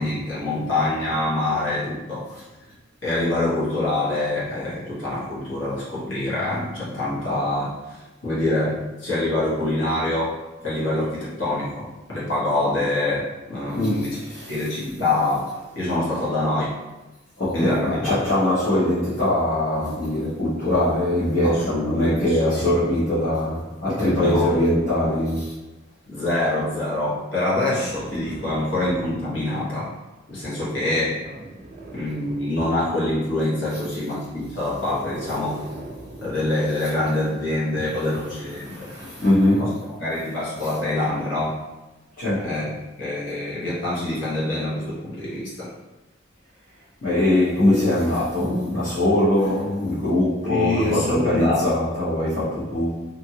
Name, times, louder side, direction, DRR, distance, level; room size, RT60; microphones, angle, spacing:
voice 1, 0.0-2.4 3.0-10.4 10.6-14.2 14.5-15.5 15.7-16.7 17.5-18.3 21.4-22.7 24.1-24.5 26.1-30.0 30.3-31.2 31.9-35.6 36.2-38.9 39.6-39.7 40.0-41.6 42.4-42.7 43.0-45.7 50.4-51.7, left 2 dB, 70° left, -9 dB, 1.1 m, -25 dB
voice 2, 13.7-14.5 14.9-15.0 17.4-25.6 38.6-39.7 42.2-42.5 47.0-53.1, left 1 dB, 45° left, -13 dB, 0.9 m, -22 dB
sound 1, 27.5-29.5 31.2-32.9 34.2-36.5 37.9-38.0, right 1 dB, 40° right, 0.4 m, -40 dB
2.8 x 2.6 x 2.8 m, 1.1 s
head